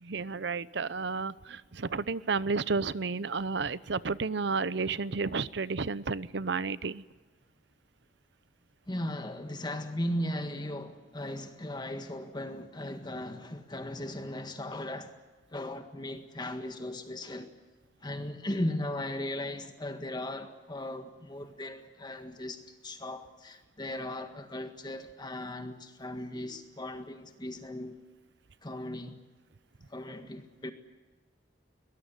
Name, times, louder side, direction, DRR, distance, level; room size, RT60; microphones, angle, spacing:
voice 1, 0.0-7.0, right 4 dB, 70° right, 0.8 m, -32 dB
voice 2, 8.9-15.2 15.5-17.6 18.0-28.0 28.6-29.2 29.9-30.7, left 1 dB, 25° left, 1.7 m, -37 dB
22.0 x 20.5 x 9.7 m
head